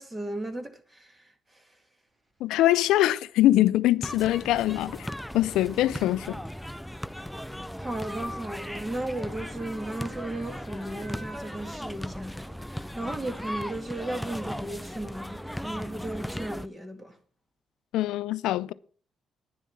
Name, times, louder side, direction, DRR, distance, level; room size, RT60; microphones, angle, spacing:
voice 1, 0.0-1.6 7.5-17.2, right 1 dB, 20° right, 2.1 m, -36 dB
voice 2, 2.4-5.1 5.3-6.4 17.9-18.7, left 14 dB, 90° left, 0.5 m, -23 dB
Motor vehicle (road) / Siren, 2.4-2.5 3.4-3.6 4.7-12.3 12.8-12.9, right 1 dB, 40° right, 3.7 m, -53 dB
Street basketball in detroit, 4.0-16.7, equal, 5° left, 0.4 m, -37 dB
10.5 x 7.3 x 7.5 m
cardioid pair, 75°, 0 cm